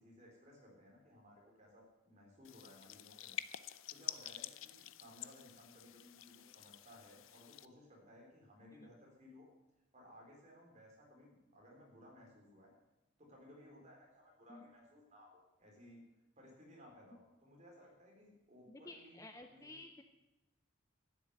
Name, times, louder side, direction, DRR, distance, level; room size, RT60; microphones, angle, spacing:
voice 1, 0.0-3.4 3.9-9.5 9.9-12.7 13.2-16.0 16.4-19.8, left 1 dB, 35° right, -1 dB, 3.9 m, -60 dB
sound 1, 2.4-7.7, left 12 dB, 65° left, 0.5 m, -48 dB
voice 2, 18.7-20.0, left 2 dB, 15° left, 6 dB, 0.6 m, -53 dB
11.5 x 10.0 x 7.9 m, 0.96 s
head